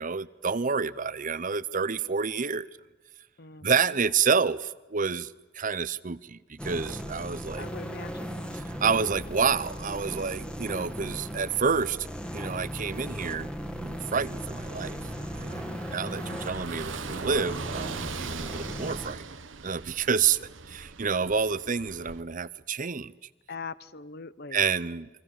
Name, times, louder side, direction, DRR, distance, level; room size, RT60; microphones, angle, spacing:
voice 1, 0.0-2.7 3.6-7.7 8.5-12.0 12.3-13.5 13.8-15.0 15.4-19.3 19.6-23.1 24.5-25.1, right 5 dB, 45° right, 18 dB, 0.8 m, -29 dB
voice 2, 3.4-4.0 7.6-8.4 16.3-16.5 23.5-24.7, left 4 dB, 55° left, 17 dB, 0.9 m, -42 dB
sound 1, 6.6-19.1, equal, 5° left, 2.2 m, -37 dB
Car passing by / Engine, 14.3-22.2, right 4 dB, 80° right, 1.3 m, -40 dB
29.5 x 23.5 x 7.2 m, 1.2 s
head